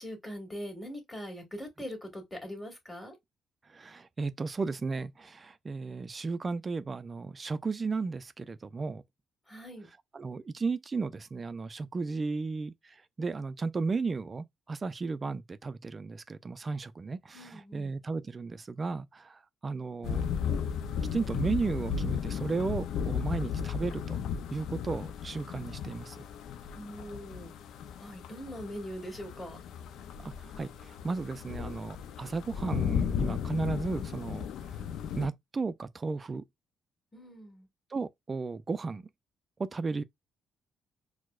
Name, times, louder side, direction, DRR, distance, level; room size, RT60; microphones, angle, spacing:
voice 1, 0.0-3.1 9.5-9.9 17.3-18.0 26.7-27.5 28.0-29.6 37.1-37.7, equal, 10° left, 1.6 m, -42 dB
voice 2, 3.7-9.0 10.1-20.3 21.1-24.2 24.5-26.2 30.2-34.5 35.2-36.4 37.9-39.0 39.6-40.0, right 4 dB, 35° right, 0.3 m, -34 dB
sound 1, 20.0-35.3, left 7 dB, 80° left, 0.4 m, -35 dB
4.5 x 2.1 x 2.3 m
cardioid pair, 90°, 0 cm